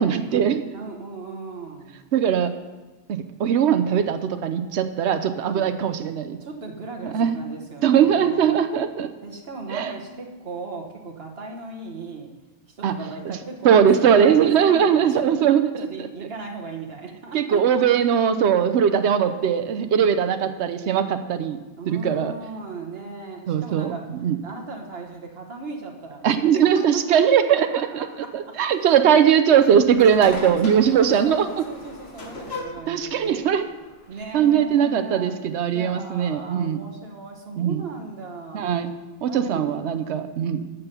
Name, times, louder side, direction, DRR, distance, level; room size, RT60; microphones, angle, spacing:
voice 1, 0.0-0.6 2.1-2.5 3.1-6.4 7.0-7.4 7.8-9.1 9.7-9.9 12.8-12.9 13.6-15.6 17.3-21.6 21.9-22.3 23.5-24.4 26.2-28.1 28.3-31.5 32.9-33.6 34.3-36.8 37.5-37.8 38.5-38.9 39.2-40.6, right 8 dB, 80° right, 9 dB, 1.0 m, -20 dB
voice 2, 0.7-2.0 5.4-5.8 6.4-8.5 9.2-12.3 12.8-15.5 15.8-17.8 19.9-20.3 21.8-24.1 24.4-27.2 27.7-29.0 30.4-33.5 34.1-38.7 39.3-39.7, right 3 dB, 60° right, 1 dB, 1.6 m, -37 dB
sound 1, 29.5-34.8, left 2 dB, 65° left, 1.7 m, -39 dB
12.5 x 5.5 x 6.9 m, 1.2 s
omnidirectional pair, 1.1 m